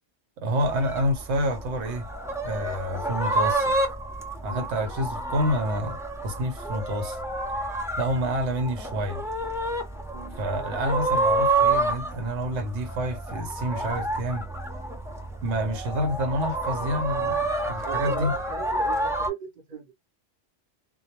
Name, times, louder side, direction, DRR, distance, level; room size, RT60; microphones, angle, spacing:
voice 1, 0.4-2.1 2.4-3.7 4.4-6.0 6.2-7.2 8.0-9.2 10.4-14.4 15.4-18.3, equal, 80° right, 1.0 m, -28 dB
sound 1, 0.6-19.3, right 2 dB, 5° right, 0.5 m, -29 dB
voice 2, 17.8-19.9, right 5 dB, 45° right, 0.9 m, -39 dB
2.2 x 2.1 x 2.8 m
omnidirectional pair, 1.2 m